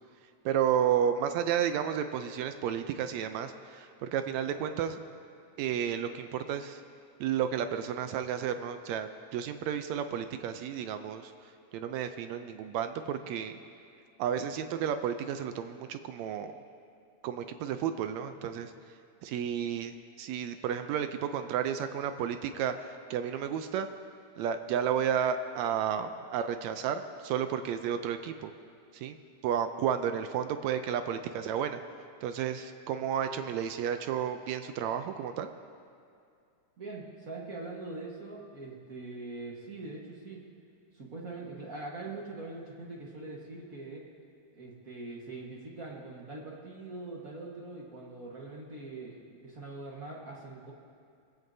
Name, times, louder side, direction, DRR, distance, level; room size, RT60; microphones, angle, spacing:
voice 1, 0.4-5.0 5.6-6.8 7.2-11.3 11.7-13.6 14.2-16.5 17.2-18.7 19.2-23.9 24.4-28.5 28.9-29.2 29.4-31.8 32.2-35.5, right 8 dB, 80° right, 9 dB, 1.7 m, -32 dB
voice 2, 36.8-40.4 40.9-44.1 44.5-50.7, right 2 dB, 50° right, -3 dB, 1.1 m, -42 dB
21.0 x 15.0 x 2.7 m, 2.4 s
omnidirectional pair, 3.5 m